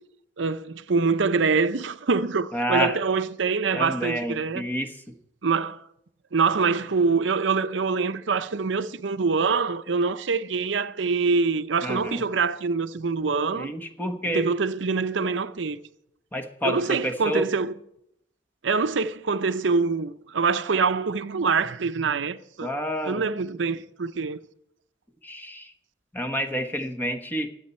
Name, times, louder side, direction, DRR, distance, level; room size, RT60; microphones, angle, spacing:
voice 1, 0.4-4.6 5.4-5.8 6.3-13.7 14.3-15.8 16.6-17.7 18.6-22.7 23.0-24.4, right 4 dB, 85° right, 0.7 m, -25 dB
voice 2, 2.5-2.9 3.7-4.9 11.8-12.2 13.5-14.4 16.3-17.5 22.6-23.2 25.2-25.7 26.1-27.5, equal, 10° left, 1.1 m, -28 dB
23.0 x 8.2 x 4.3 m
head